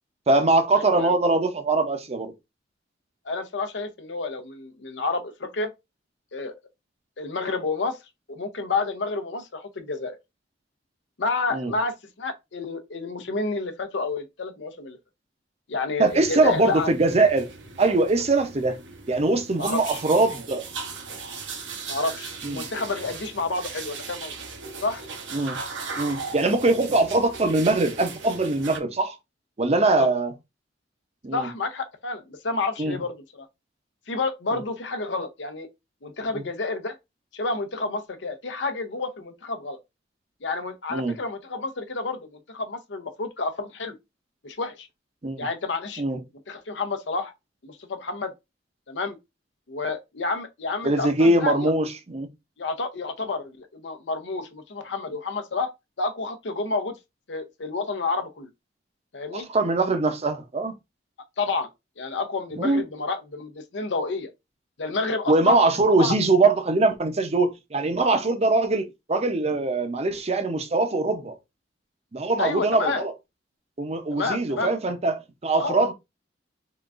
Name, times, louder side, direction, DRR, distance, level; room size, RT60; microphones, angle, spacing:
voice 1, 0.3-2.3 11.5-11.7 16.0-17.5 17.8-18.8 19.1-20.7 22.4-22.6 25.3-25.6 26.0-29.2 29.6-30.3 31.2-31.5 32.8-33.0 34.5-34.6 40.9-41.1 45.2-45.5 46.0-46.2 50.8-52.3 59.3-60.7 62.6-62.8 65.3-71.4 72.1-73.1 73.8-75.9, right 2 dB, 35° right, 0.6 m, -22 dB
voice 2, 3.3-5.7 6.3-6.5 7.2-8.0 8.3-10.2 11.2-15.0 15.7-16.9 19.6-20.0 21.9-24.3 24.8-25.0 30.0-30.1 31.3-33.5 34.1-35.7 36.0-37.0 37.3-39.8 40.4-44.0 44.4-44.9 45.4-46.0 46.5-47.3 47.6-48.3 48.9-49.2 49.7-51.7 52.6-55.7 56.0-56.9 57.3-58.5 59.1-59.5 61.4-61.7 62.0-64.3 64.8-65.6 66.0-66.1 72.4-73.0 74.1-74.7 75.5-75.8, left 3 dB, 75° left, 0.7 m, -29 dB
sound 1, 16.0-28.8, right 4 dB, 85° right, 0.9 m, -38 dB
3.7 x 3.4 x 2.4 m
head